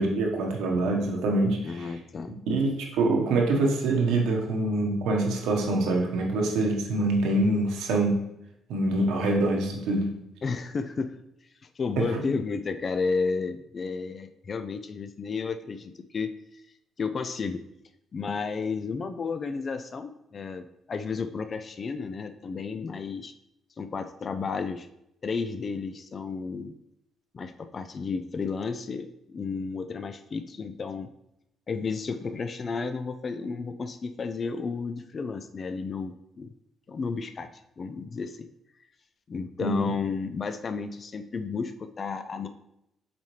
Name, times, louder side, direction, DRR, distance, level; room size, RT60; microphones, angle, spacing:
voice 1, 0.0-1.9 2.5-8.2 8.7-10.1 12.0-12.2 39.6-39.9, right 2 dB, 90° right, 0 dB, 1.2 m, -25 dB
voice 2, 1.6-2.3 10.4-11.1 11.8-16.3 17.0-17.6 18.1-23.3 23.8-24.9 25.2-26.7 27.3-31.1 31.7-36.5 36.9-37.5 37.8-38.5 39.3-42.5, left 4 dB, 40° left, 9 dB, 0.4 m, -32 dB
7.2 x 4.3 x 3.2 m, 0.83 s
cardioid pair, 100°, 0 cm